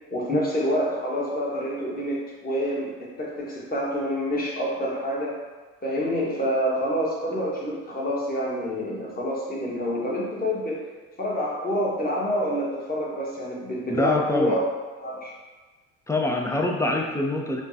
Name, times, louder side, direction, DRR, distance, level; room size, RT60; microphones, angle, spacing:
voice 1, 0.1-5.3 5.8-10.8 11.2-14.6 15.0-15.3, equal, 25° left, -4 dB, 1.3 m, -27 dB
voice 2, 13.9-14.6 16.1-17.6, left 2 dB, 10° left, 1 dB, 0.5 m, -25 dB
5.1 x 2.2 x 2.7 m, 1.3 s
hypercardioid pair, 60°, 37 cm